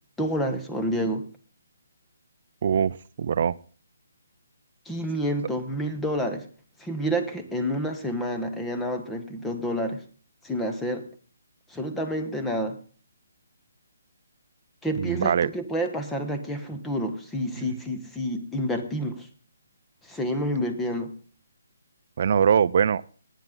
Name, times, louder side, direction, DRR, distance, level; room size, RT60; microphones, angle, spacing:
voice 1, 0.2-1.3 4.8-6.5 6.8-10.0 10.4-11.0 11.7-12.8 14.8-19.3 20.1-21.1, equal, 5° left, 6 dB, 1.1 m, -29 dB
voice 2, 2.6-3.5 15.0-15.5 17.6-17.7 22.2-23.0, right 7 dB, 45° right, 18 dB, 0.5 m, -22 dB
19.0 x 9.2 x 3.8 m, 0.41 s
hypercardioid pair, 165°, 0 cm